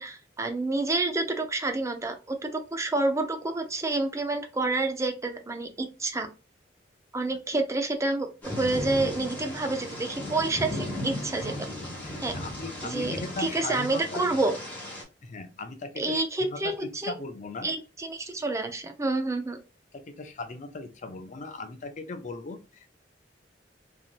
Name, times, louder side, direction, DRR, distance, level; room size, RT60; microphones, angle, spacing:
voice 1, 0.0-6.3 7.1-8.3 8.6-11.5 12.2-12.3 12.8-14.5 16.0-17.1 17.6-19.6, right 2 dB, 15° right, 5 dB, 0.5 m, -28 dB
Thunder / Rain, 8.4-15.0, left 1 dB, 10° left, 1.3 m, -36 dB
voice 2, 12.0-14.3 15.2-17.7 19.9-22.9, left 3 dB, 45° left, 8 dB, 0.5 m, -38 dB
3.3 x 2.7 x 2.4 m, 0.31 s
head